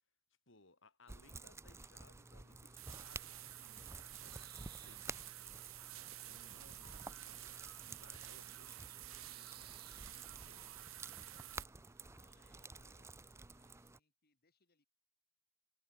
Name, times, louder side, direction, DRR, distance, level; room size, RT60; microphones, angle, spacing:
voice 1, 0.5-5.3 6.2-11.6, left 2 dB, 65° left, 4.9 m, -66 dB
sound 1, 1.1-14.0, right 3 dB, 15° right, 0.5 m, -52 dB
sound 2, 2.2-13.9, right 7 dB, 50° right, 5.4 m, -68 dB
sound 3, 2.8-11.6, right 15 dB, 80° right, 0.8 m, -52 dB
voice 2, 12.1-14.9, left 4 dB, 50° left, 4.0 m, -76 dB
head